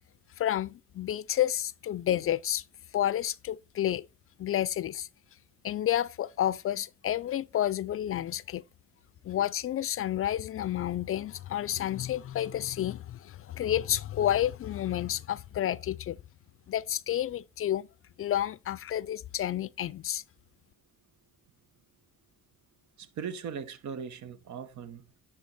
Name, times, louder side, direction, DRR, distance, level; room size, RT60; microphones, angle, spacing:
voice 1, 0.4-2.6 2.9-4.0 4.4-5.1 5.6-8.6 9.2-16.2 16.7-17.9 18.2-20.2, left 11 dB, 50° left, 0.4 m, -30 dB
voice 2, 23.0-25.1, right 7 dB, 70° right, 1.1 m, -39 dB
10.5 x 3.8 x 4.1 m
cardioid pair, 90°, 30 cm